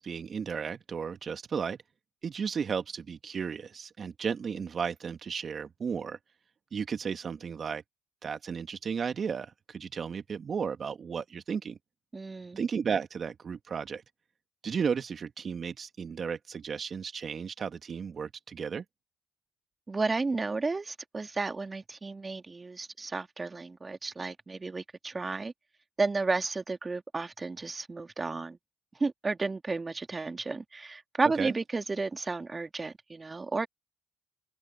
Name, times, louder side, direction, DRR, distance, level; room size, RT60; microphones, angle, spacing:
voice 1, 0.0-1.8 2.2-6.2 6.7-7.8 8.2-11.8 12.6-14.0 14.6-18.8 31.4-31.5, right 6 dB, 50° right, 1.3 m, -34 dB
voice 2, 12.1-12.6 19.9-25.5 26.0-28.6 29.0-33.7, right 3 dB, 30° right, 2.2 m, -32 dB
open air
hypercardioid pair, 50°, 0 cm